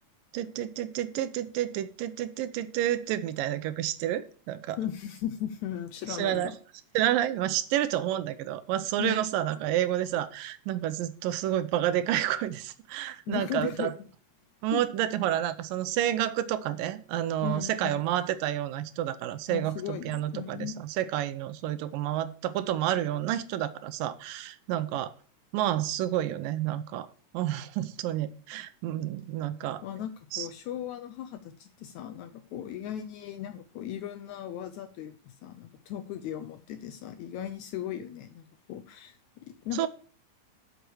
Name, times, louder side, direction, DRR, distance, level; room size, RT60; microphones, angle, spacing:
voice 1, 0.3-4.8 6.1-6.5 6.9-13.9 14.6-25.1 25.5-27.1 27.3-29.8 30.3-30.5 39.7-39.9, right 12 dB, 85° right, 13 dB, 2.5 m, -30 dB
voice 2, 4.8-6.6 9.0-9.3 13.3-13.9 14.7-14.9 17.4-17.9 19.5-20.8 29.8-39.9, left 10 dB, 75° left, 10 dB, 1.7 m, -37 dB
7.9 x 6.8 x 6.2 m, 0.42 s
omnidirectional pair, 3.9 m